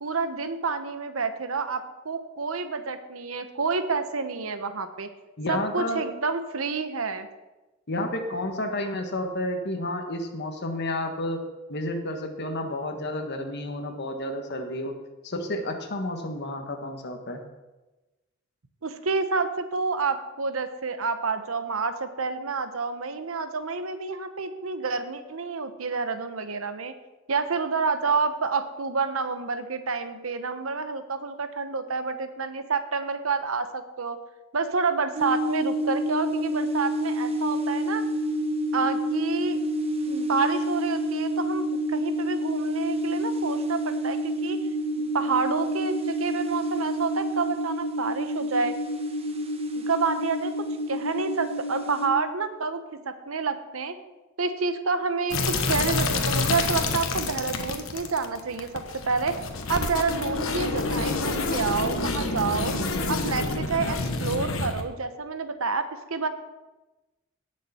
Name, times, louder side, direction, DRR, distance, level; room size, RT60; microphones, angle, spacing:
voice 1, 0.0-5.1 5.5-7.3 18.8-26.9 27.3-34.2 34.5-38.0 38.7-39.6 40.1-44.6 45.0-48.8 49.8-53.9 54.4-59.4 59.7-62.8 63.1-66.3, right 4 dB, 90° right, 10 dB, 0.9 m, -29 dB
voice 2, 5.4-6.0 7.9-11.4 11.7-14.9 15.2-17.4, left 1 dB, 55° left, 5 dB, 1.5 m, -31 dB
sound 1, 35.2-52.1, equal, 30° right, 1.2 m, -28 dB
sound 2, 55.3-64.8, left 3 dB, 75° left, 1.2 m, -28 dB
17.5 x 6.7 x 4.3 m, 1.1 s
head